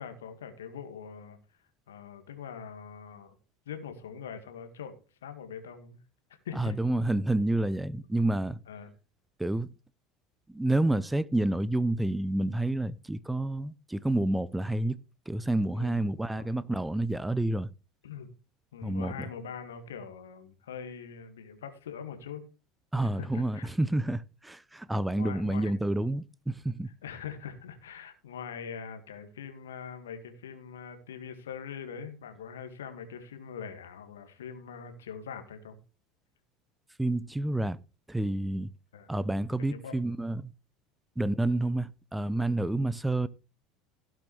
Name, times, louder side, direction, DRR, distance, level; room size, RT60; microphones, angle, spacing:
voice 1, 0.0-1.4 1.9-3.3 3.7-5.0 5.2-6.0 6.5-6.7 8.7-8.9 15.7-16.1 16.3-16.5 18.0-18.3 18.7-22.4 23.0-23.7 25.1-25.7 26.8-35.8 38.9-39.1 39.7-40.0, left 7 dB, 75° left, 1.8 m, -42 dB
voice 2, 6.6-8.6 9.4-9.7 10.5-15.0 15.3-17.7 18.8-19.3 22.9-26.9 37.0-37.8 38.1-38.7 39.1-40.5 41.2-43.3, right 1 dB, 5° right, 0.6 m, -29 dB
17.0 x 6.2 x 3.2 m
figure-of-eight pair, 75°, 0 cm